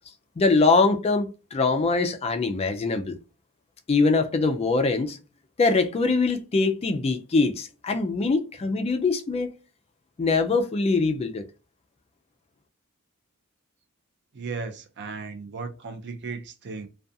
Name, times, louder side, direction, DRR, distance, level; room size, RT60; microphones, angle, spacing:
voice 1, 0.4-3.2 3.9-5.2 5.6-9.5 10.2-11.4, left 3 dB, 30° left, 0.3 m, -23 dB
voice 2, 14.3-16.9, right 4 dB, 50° right, 0.4 m, -36 dB
2.4 x 2.2 x 2.6 m
head